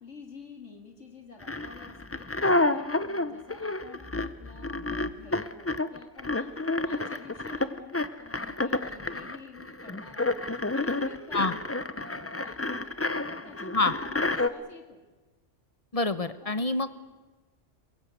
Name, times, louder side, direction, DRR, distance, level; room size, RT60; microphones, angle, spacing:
voice 1, 0.0-13.0 13.3-15.0 16.4-16.8, left 3 dB, 70° left, 4 dB, 2.5 m, -49 dB
sound 1, 1.4-14.5, left 2 dB, 15° left, 0.6 m, -30 dB
voice 2, 15.9-17.0, left 3 dB, 30° left, 12 dB, 1.0 m, -27 dB
22.5 x 22.0 x 8.2 m, 1.2 s
omnidirectional pair, 1.3 m